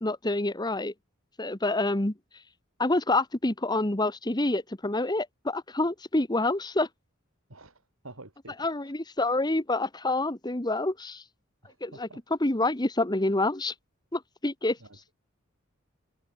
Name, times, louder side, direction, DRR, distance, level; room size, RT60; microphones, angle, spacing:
voice 1, 0.0-0.9 1.4-2.1 2.8-6.9 8.6-11.2 11.8-13.7 14.1-14.8, left 2 dB, 20° left, 1.3 m, -27 dB
voice 2, 8.0-8.5 11.6-12.2, right 2 dB, 80° right, 4.8 m, -48 dB
head